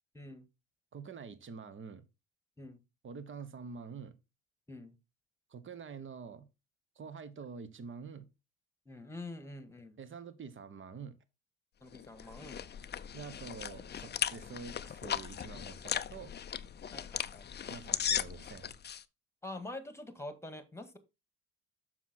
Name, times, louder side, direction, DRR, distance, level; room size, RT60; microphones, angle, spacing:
voice 1, 0.1-0.5 2.6-2.8 4.7-5.0 8.9-10.0 11.8-12.7 16.9-17.5 19.4-21.0, left 2 dB, 5° left, 1.7 m, -46 dB
voice 2, 0.9-2.0 3.0-4.2 5.5-6.5 7.0-8.3 10.0-11.2 13.1-16.3 17.7-18.7, right 5 dB, 35° right, 1.2 m, -46 dB
sound 1, 11.9-19.0, left 8 dB, 30° left, 0.5 m, -38 dB
7.2 x 5.9 x 4.2 m
supercardioid pair, 80°, 36 cm